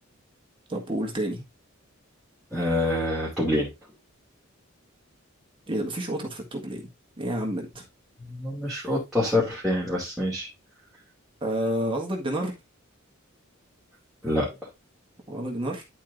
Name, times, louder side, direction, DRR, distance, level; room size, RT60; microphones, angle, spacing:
voice 1, 0.7-1.4 5.7-6.9 7.2-7.8 11.4-12.5 15.3-15.8, right 1 dB, 25° right, 1.7 m, -29 dB
voice 2, 2.5-3.7 8.3-10.5 14.2-14.6, left 1 dB, ahead, 2.6 m, -26 dB
11.0 x 4.6 x 2.6 m
head